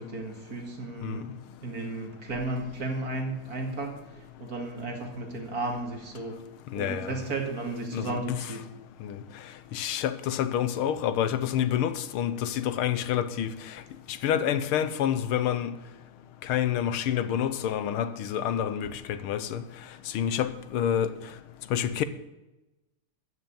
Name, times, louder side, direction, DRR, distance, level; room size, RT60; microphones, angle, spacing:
voice 1, 0.0-1.3 1.6-3.9 4.4-6.4 6.7-8.6, right 2 dB, 45° right, 2.5 m, -34 dB
voice 2, 6.7-7.1 7.9-8.4 9.0-9.1 9.7-13.5 14.2-15.7 16.5-19.6 20.1-21.1 21.7-22.0, left 10 dB, 85° left, 1.7 m, -28 dB
14.0 x 6.7 x 9.0 m
omnidirectional pair, 2.3 m